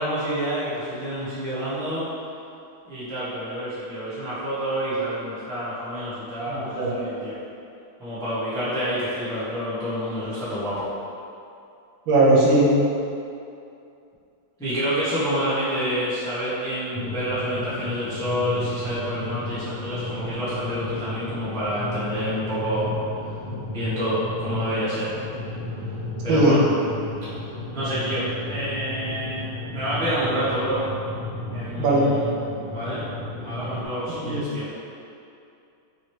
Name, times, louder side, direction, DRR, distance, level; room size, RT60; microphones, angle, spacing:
voice 1, 0.0-2.1 2.8-7.3 8.0-10.9 14.6-22.9 23.7-25.1 26.2-26.6 27.5-30.8 31.5-32.3 32.7-33.0 33.4-34.7, equal, 5° left, -13 dB, 0.4 m, -28 dB
voice 2, 6.5-7.0 12.1-12.7 26.3-26.6 31.8-32.1 34.2-34.4, right 2 dB, 75° right, -5 dB, 1.4 m, -19 dB
sound 1, 16.9-33.9, left 2 dB, 65° left, 0.4 m, -33 dB
3.9 x 2.9 x 3.1 m, 2.6 s
omnidirectional pair, 2.3 m